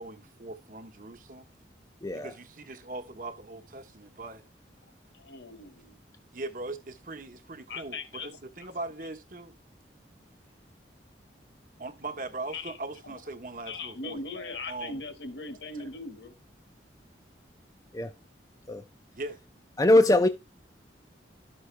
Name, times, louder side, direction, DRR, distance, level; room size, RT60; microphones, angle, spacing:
voice 1, 0.0-1.5 2.1-4.4 6.3-9.6 11.8-14.2 14.7-15.0 19.1-19.4, right 2 dB, 50° right, 1.1 m, -40 dB
voice 2, 2.0-2.3 17.9-18.1 18.7-18.8 19.8-20.3, left 1 dB, 20° left, 0.4 m, -21 dB
voice 3, 5.1-6.0 7.7-8.3 8.6-8.7 12.5-12.8 13.0-13.1 13.6-16.3, left 3 dB, 80° left, 1.7 m, -39 dB
12.5 x 6.2 x 3.2 m
head